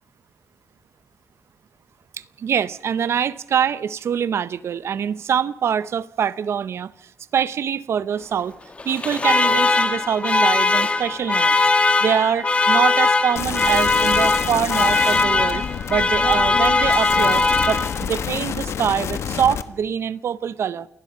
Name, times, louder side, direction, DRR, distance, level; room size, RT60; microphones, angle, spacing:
voice 1, 2.4-6.9 7.3-8.6 8.8-11.6 12.0-15.6 15.9-20.9, right 8 dB, 65° right, 0.8 m, -24 dB
Alarm, 8.8-18.2, left 3 dB, 25° left, 1.5 m, -20 dB
sound 1, 13.4-19.6, left 8 dB, 75° left, 1.3 m, -29 dB
28.5 x 19.5 x 5.6 m
wide cardioid pair, 145°, 5 cm